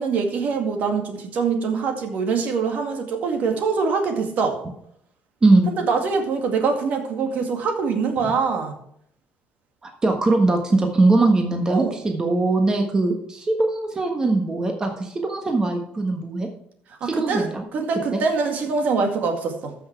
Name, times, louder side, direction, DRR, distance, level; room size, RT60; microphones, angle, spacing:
voice 1, 0.0-4.6 5.8-8.7 11.7-11.9 17.0-19.7, right 5 dB, 55° right, 4 dB, 2.1 m, -24 dB
voice 2, 9.8-16.5 17.0-17.6 18.1-18.2, right 2 dB, 20° right, 3 dB, 1.4 m, -21 dB
14.0 x 6.1 x 4.6 m, 0.72 s
cardioid pair, 125°, 3 cm